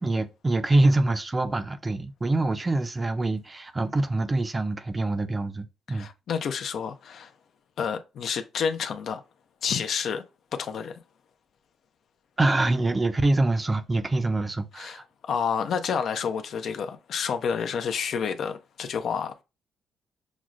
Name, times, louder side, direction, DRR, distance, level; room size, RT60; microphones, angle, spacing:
voice 1, 0.0-6.1 12.4-15.0, right 2 dB, 20° right, 0.4 m, -25 dB
voice 2, 5.9-7.3 7.8-9.2 9.6-10.2 10.5-11.0 14.8-19.4, left 6 dB, 65° left, 0.4 m, -29 dB
6.0 x 2.1 x 2.4 m
cardioid pair, 90°, 0 cm